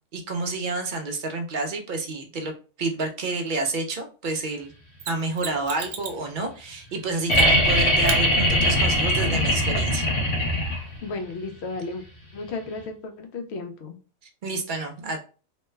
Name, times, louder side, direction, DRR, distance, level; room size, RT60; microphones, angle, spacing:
voice 1, 0.1-2.5 2.8-4.7 5.1-10.1 14.4-15.2, right 3 dB, 60° right, 4 dB, 0.5 m, -29 dB
Mechanisms, 5.0-6.2 7.3-7.7 8.1-8.2 11.0-11.1, right 6 dB, 75° right, 1.0 m, -34 dB
sound 1, 7.3-11.1 12.8-12.9, equal, 80° left, 1.2 m, -21 dB
voice 2, 11.0-12.0 12.3-13.9, left 3 dB, 65° left, 4 dB, 0.8 m, -33 dB
3.1 x 2.2 x 3.1 m, 0.35 s
omnidirectional pair, 1.4 m